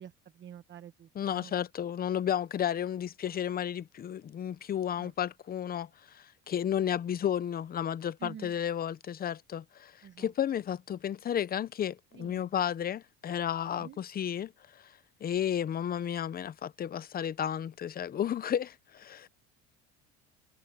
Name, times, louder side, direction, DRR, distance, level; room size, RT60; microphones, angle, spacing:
voice 1, 0.0-1.5 5.0-5.1 8.2-8.6 10.0-10.3 12.1-12.5 13.8-14.0, right 9 dB, 40° right, 1.3 m, -48 dB
voice 2, 1.2-9.9 10.2-14.5 15.2-19.3, left 9 dB, 30° left, 0.7 m, -32 dB
cardioid pair, 125°, 30 cm